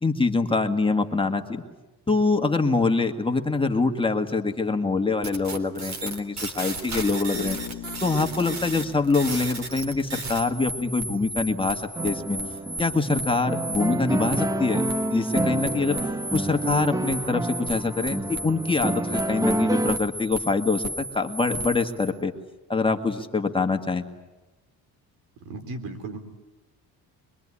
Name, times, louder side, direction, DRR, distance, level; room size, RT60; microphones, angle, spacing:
voice 1, 0.0-1.6 2.1-7.6 8.0-12.4 12.8-14.8 15.1-16.0 16.3-22.3 22.7-24.0, left 3 dB, 15° left, 4 dB, 1.9 m, -24 dB
sound 1, 5.2-22.1, right 2 dB, 45° right, 3.7 m, -34 dB
Bass guitar, 7.3-11.2, left 12 dB, 75° left, 1.8 m, -41 dB
sound 2, 12.0-20.0, right 1 dB, 10° right, 1.0 m, -28 dB
voice 2, 25.4-26.2, right 3 dB, 75° right, 8 dB, 3.9 m, -35 dB
25.5 x 22.0 x 9.9 m, 1.1 s
cardioid pair, 110°, 37 cm